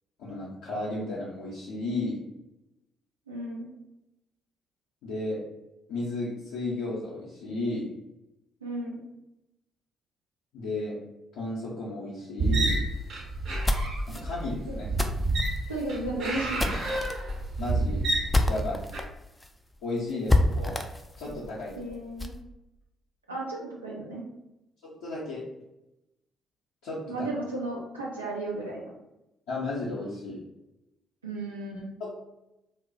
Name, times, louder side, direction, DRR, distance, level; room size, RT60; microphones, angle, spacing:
voice 1, 0.2-2.2 5.0-5.4 5.9-7.9 10.5-10.9 11.3-12.8 14.1-14.9 17.6-18.0 18.5-18.8 19.8-20.7 21.2-21.7 24.8-25.4 26.8-27.3 29.5-30.4 32.0-32.2, left 2 dB, 70° left, -8 dB, 0.6 m, -33 dB
voice 2, 3.3-3.7 8.6-9.0 14.7-14.8 15.7-16.8 21.8-22.3 23.3-24.2 27.1-28.8 31.2-31.9, right 2 dB, 85° right, -4 dB, 0.5 m, -34 dB
sound 1, 12.4-19.0, right 2 dB, 60° right, 0.8 m, -29 dB
sound 2, 13.4-19.0 19.4-19.5 19.8-19.9 20.3-22.4, left 1 dB, 15° left, 0.3 m, -29 dB
2.2 x 2.0 x 3.7 m, 0.90 s
figure-of-eight pair, 40°, 0 cm